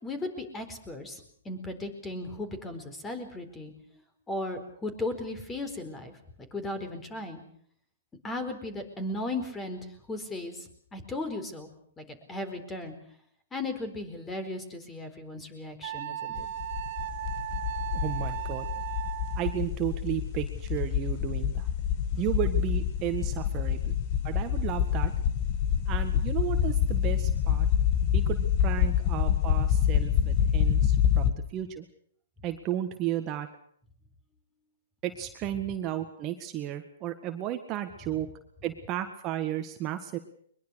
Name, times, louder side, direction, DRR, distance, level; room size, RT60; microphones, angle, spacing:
voice 1, 0.0-3.7 4.3-6.1 6.5-7.4 8.2-11.7 12.0-12.9 13.5-16.4, left 2 dB, 15° left, 9 dB, 4.2 m, -36 dB
Wind instrument woodwind instrument, 15.8-19.6, right 12 dB, 50° right, 1.4 m, -36 dB
sound 1, 16.4-31.3, left 9 dB, 40° left, 1.7 m, -27 dB
voice 2, 17.9-18.7 19.3-21.7 22.2-24.0 24.2-25.1 25.8-27.7 28.1-31.9 32.4-33.5 35.0-38.3 38.6-40.2, right 12 dB, 30° right, 6 dB, 1.7 m, -33 dB
22.5 x 21.5 x 6.5 m, 0.63 s
hypercardioid pair, 130°, 0 cm